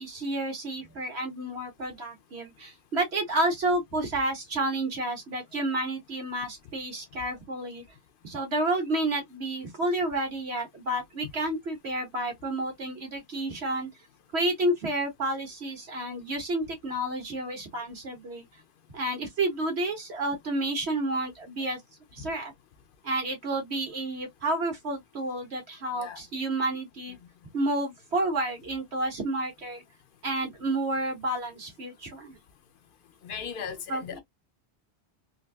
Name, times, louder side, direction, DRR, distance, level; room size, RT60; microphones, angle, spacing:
voice 1, 0.0-7.8 8.2-13.9 14.3-18.5 18.9-21.8 22.1-22.5 23.0-27.2 27.5-29.8 30.2-32.4 33.9-34.2, right 1 dB, 75° right, 1.7 m, -30 dB
voice 2, 33.2-34.2, left 7 dB, 60° left, 0.6 m, -37 dB
3.8 x 2.6 x 2.2 m
omnidirectional pair, 1.1 m